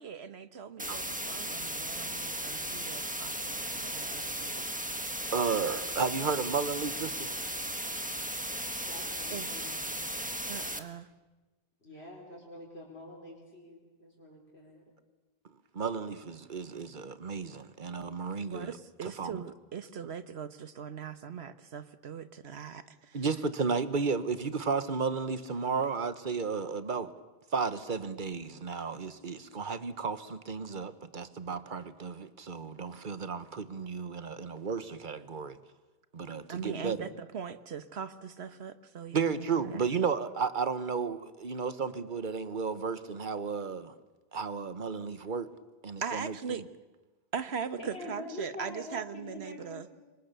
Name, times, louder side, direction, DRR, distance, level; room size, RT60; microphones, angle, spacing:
voice 1, 0.0-4.7 9.3-9.7 10.5-11.1 18.5-23.2 36.5-40.1 46.0-46.6 47.3-49.9, right 7 dB, 85° right, 12 dB, 1.4 m, -41 dB
sound 1, 0.8-10.8, right 1 dB, 10° right, 1.5 m, -36 dB
voice 2, 5.3-7.3 15.7-18.7 19.0-19.4 23.1-27.1 27.5-35.6 36.1-37.1 39.1-43.9 44.3-45.5 45.8-46.6, right 5 dB, 50° right, 13 dB, 1.3 m, -33 dB
voice 3, 8.8-10.0 11.8-14.9 47.8-49.9, left 1 dB, 85° left, -3 dB, 4.8 m, -45 dB
26.0 x 23.5 x 6.8 m, 1.2 s
omnidirectional pair, 1.0 m